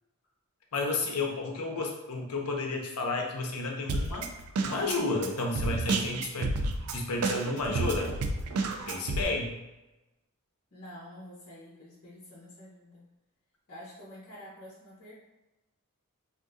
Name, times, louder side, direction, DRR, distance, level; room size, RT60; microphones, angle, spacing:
voice 1, 0.7-4.3 4.6-6.5 6.9-8.1 8.9-9.5, left 3 dB, 90° left, 1 dB, 0.6 m, -31 dB
Drum kit, 3.9-9.2, right 3 dB, 90° right, 0.4 m, -31 dB
voice 2, 10.7-13.1 13.7-15.1, left 1 dB, 45° left, -7 dB, 0.8 m, -48 dB
3.4 x 2.5 x 2.6 m, 1.0 s
head